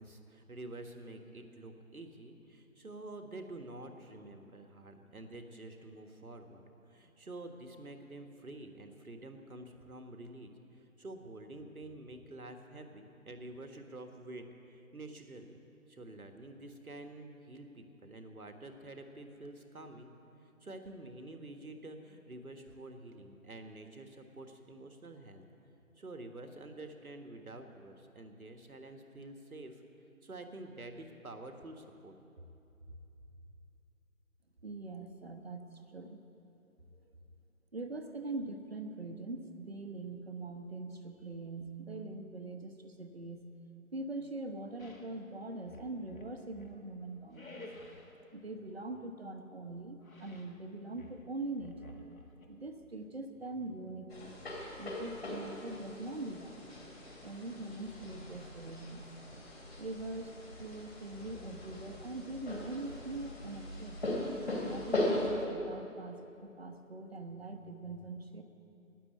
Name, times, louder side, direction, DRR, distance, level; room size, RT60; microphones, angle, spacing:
voice 1, 0.0-15.6 15.9-20.1 20.4-25.4 26.0-29.8 30.2-32.1, right 2 dB, 80° right, 5 dB, 1.6 m, -48 dB
voice 2, 34.6-36.2 37.7-43.5 43.9-47.7 48.3-51.9 52.5-54.3 54.8-56.7 57.2-59.1 59.8-64.0 64.6-68.4, right 2 dB, 45° right, 6 dB, 1.0 m, -43 dB
sound 1, 44.8-45.1 45.6-46.8 47.3-48.2 50.0-50.6 50.9-52.5, left 2 dB, 70° left, 1.7 m, -52 dB
sound 2, 54.1-65.3, left 1 dB, 45° left, 2.9 m, -39 dB
12.5 x 9.7 x 8.5 m, 2.9 s
figure-of-eight pair, 165°, 43 cm